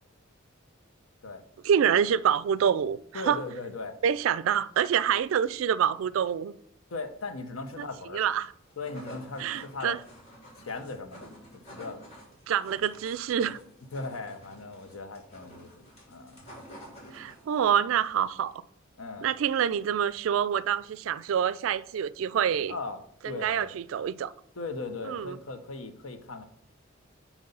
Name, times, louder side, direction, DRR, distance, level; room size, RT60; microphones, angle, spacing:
voice 1, 1.6-3.4 4.0-6.5 7.8-7.9 8.1-8.5 9.4-10.0 12.5-13.6 17.1-18.5 19.2-22.7 23.2-24.3 25.1-25.4, right 8 dB, 70° right, 0.3 m, -26 dB
voice 2, 3.1-3.9 4.3-4.4 6.9-8.2 8.8-10.0 10.6-11.3 11.7-12.0 13.9-16.5 17.2-17.3 19.0-19.3 22.7-23.0 23.2-23.7 24.6-26.5, left 3 dB, 85° left, 0.8 m, -38 dB
sound 1, 8.5-17.6, equal, 35° left, 2.9 m, -49 dB
7.7 x 3.1 x 5.4 m
head